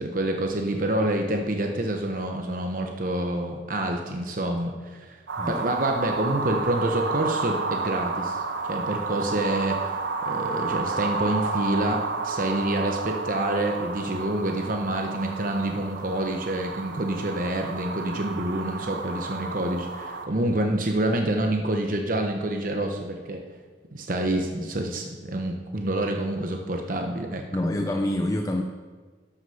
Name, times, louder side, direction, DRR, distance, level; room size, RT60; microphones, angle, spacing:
voice 1, 0.0-5.2 5.5-23.4 23.9-27.4, right 1 dB, 45° right, 3 dB, 0.9 m, -27 dB
sound 1, 5.3-20.3, right 4 dB, 75° right, 1.0 m, -31 dB
voice 2, 27.5-28.6, left 1 dB, 20° left, 3 dB, 0.5 m, -26 dB
12.5 x 6.3 x 5.8 m, 1.4 s
head